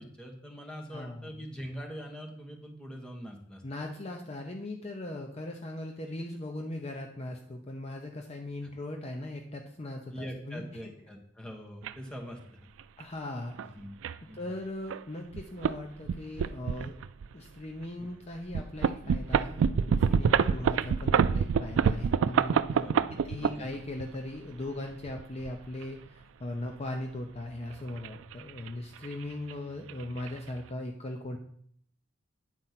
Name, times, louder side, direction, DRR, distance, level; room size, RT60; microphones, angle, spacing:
voice 1, 0.0-3.6 10.1-12.6 13.6-14.0 14.2-14.4 18.0-18.1 20.4-20.6 22.8-23.7, equal, 5° left, 1 dB, 1.3 m, -43 dB
voice 2, 0.9-1.4 3.6-10.6 13.0-13.7 14.3-16.9 17.3-31.4, left 1 dB, 35° left, 3 dB, 0.7 m, -39 dB
sound 1, 11.8-11.9 12.8-13.0 13.6-13.7 14.0-14.2 14.9-15.0 15.3-15.8 16.1-17.3 17.8-17.9 18.5-24.1 24.9-25.8 27.5-28.7 29.0-29.2 29.5-29.6 29.9-30.3, right 6 dB, 85° right, 0.3 m, -27 dB
9.2 x 4.4 x 5.8 m, 0.64 s
head